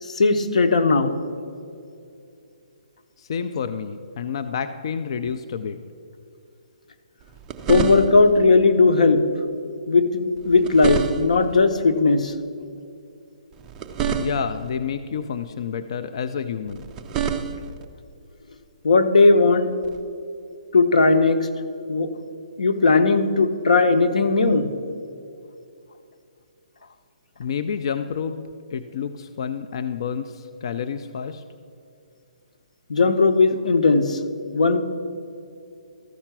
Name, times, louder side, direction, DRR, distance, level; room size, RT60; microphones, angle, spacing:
voice 1, 0.0-1.1 7.7-9.2 9.9-12.3 18.8-19.7 20.7-21.5 21.9-22.1 22.6-24.7 32.9-34.2 34.5-34.8, left 3 dB, 85° left, 8 dB, 0.9 m, -17 dB
voice 2, 3.2-5.8 14.2-16.9 27.4-31.4, left 7 dB, 50° left, 9 dB, 0.4 m, -29 dB
sound 1, 7.2-8.4 10.4-11.5 13.5-14.7 16.7-17.9 19.8-20.0, right 7 dB, 15° right, 0.4 m, -28 dB
13.5 x 5.6 x 6.0 m, 2.5 s
hypercardioid pair, 165°, 4 cm